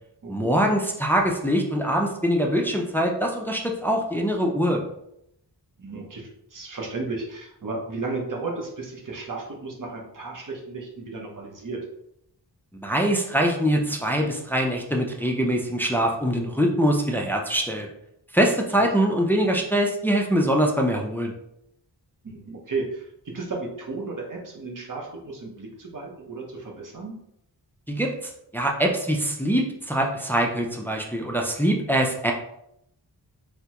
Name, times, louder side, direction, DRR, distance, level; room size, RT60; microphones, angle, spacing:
voice 1, 0.3-4.8 12.7-17.9 18.3-21.3 27.9-32.3, equal, 5° left, 1 dB, 0.3 m, -23 dB
voice 2, 5.8-11.8 18.8-18.9 22.2-23.1 23.3-27.2, right 3 dB, 45° right, 0 dB, 0.8 m, -34 dB
3.3 x 2.1 x 2.9 m, 0.77 s
wide cardioid pair, 65°, 43 cm